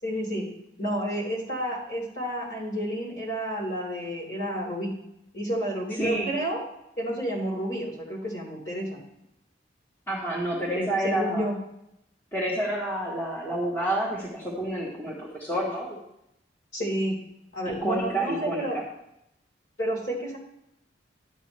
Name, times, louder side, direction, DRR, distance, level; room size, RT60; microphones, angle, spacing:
voice 1, 0.0-0.5 0.8-4.9 5.3-6.6 7.0-9.0 10.8-11.6 16.7-17.1 17.5-18.8 19.8-20.4, right 1 dB, 55° left, -4 dB, 3.5 m, -30 dB
voice 2, 6.0-6.3 10.1-11.5 12.3-16.0 17.7-18.8, right 1 dB, 10° left, -5 dB, 1.3 m, -29 dB
11.5 x 7.7 x 3.2 m, 0.81 s
head